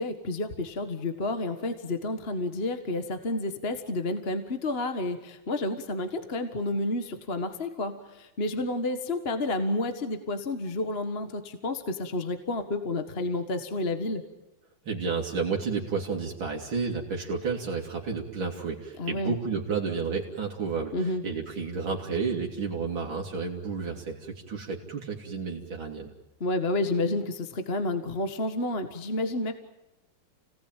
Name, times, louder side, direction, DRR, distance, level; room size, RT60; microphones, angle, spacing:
voice 1, 0.0-14.2 19.0-19.3 20.9-21.2 26.4-29.5, left 2 dB, 30° left, 8 dB, 1.7 m, -30 dB
voice 2, 14.8-26.1, right 5 dB, 75° right, 0 dB, 3.3 m, -31 dB
29.5 x 19.0 x 9.1 m, 0.97 s
omnidirectional pair, 2.2 m